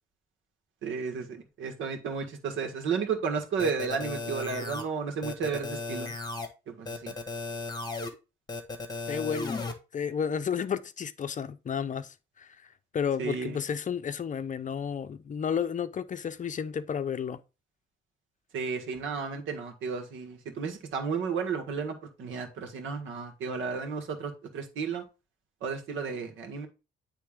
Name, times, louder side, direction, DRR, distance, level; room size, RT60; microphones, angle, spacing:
voice 1, 0.8-6.1 6.7-7.1 13.2-13.6 18.5-25.0 25.6-26.7, right 5 dB, 80° right, 1.6 m, -33 dB
sound 1, 3.6-4.8 5.2-6.5 6.9-8.1 8.5-9.7, left 3 dB, 20° left, 1.5 m, -35 dB
voice 2, 9.1-12.5 12.9-17.4, left 7 dB, 40° left, 0.6 m, -32 dB
9.7 x 3.4 x 3.6 m
cardioid pair, 90°, 20 cm